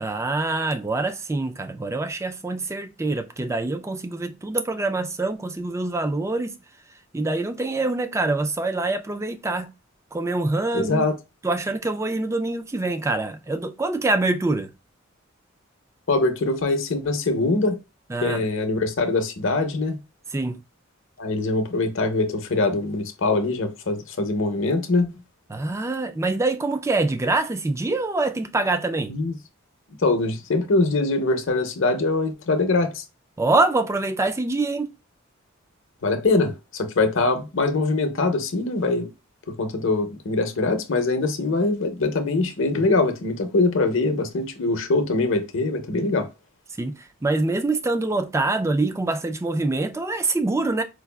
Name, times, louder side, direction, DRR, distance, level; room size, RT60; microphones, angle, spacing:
voice 1, 0.0-6.6 7.1-9.7 10.1-11.1 11.4-14.7 18.1-18.5 20.3-20.6 25.5-29.2 33.4-34.9 46.8-50.8, right 2 dB, 15° right, 0.3 m, -25 dB
voice 2, 10.7-11.1 16.1-17.8 18.2-20.0 21.2-25.1 29.1-29.3 30.0-33.0 36.0-39.1 39.5-46.3, left 3 dB, 60° left, 0.7 m, -23 dB
4.6 x 2.4 x 2.2 m
head